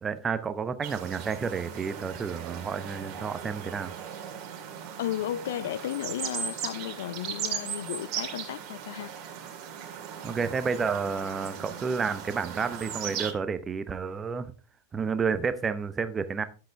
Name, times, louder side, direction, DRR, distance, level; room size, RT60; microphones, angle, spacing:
voice 1, 0.0-3.9 10.2-14.5 14.9-16.4, right 5 dB, 20° right, 0.9 m, -30 dB
sound 1, 0.8-13.3, right 8 dB, 40° right, 2.3 m, -38 dB
voice 2, 5.0-9.1, left 12 dB, 55° left, 0.4 m, -34 dB
11.0 x 7.7 x 3.4 m
figure-of-eight pair, 90°, 0 cm